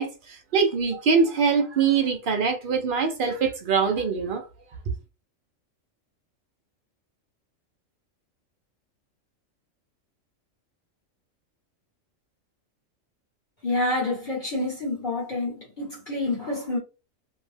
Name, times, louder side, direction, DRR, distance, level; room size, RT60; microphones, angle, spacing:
voice 1, 0.0-4.4, right 5 dB, 60° right, 0.5 m, -23 dB
voice 2, 13.6-16.8, left 2 dB, 40° left, 1.1 m, -28 dB
2.7 x 2.1 x 3.2 m
omnidirectional pair, 1.4 m